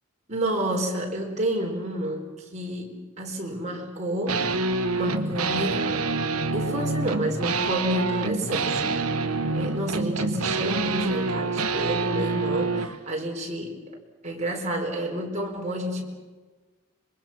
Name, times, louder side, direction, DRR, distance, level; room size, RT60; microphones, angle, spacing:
voice 1, 0.3-4.5 4.9-6.1 6.5-13.8 14.2-16.0, right 1 dB, 30° right, 0 dB, 4.4 m, -30 dB
sound 1, 4.3-13.0, right 3 dB, 85° right, 1.2 m, -26 dB
26.0 x 23.5 x 6.1 m, 1.3 s
head